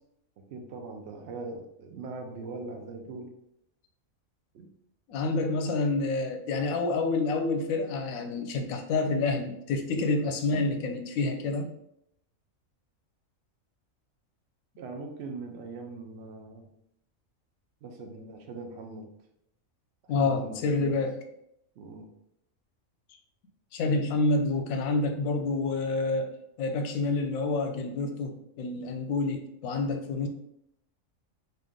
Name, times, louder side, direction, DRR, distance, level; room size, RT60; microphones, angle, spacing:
voice 1, 0.5-3.3 4.5-4.7 14.8-16.7 17.8-19.1 20.0-20.9 21.8-22.1, right 3 dB, 60° right, 4 dB, 0.8 m, -41 dB
voice 2, 5.1-11.7 20.1-21.2 23.7-26.3 26.6-30.3, left 3 dB, 90° left, 5 dB, 1.0 m, -28 dB
3.3 x 2.7 x 3.6 m, 0.77 s
omnidirectional pair, 1.4 m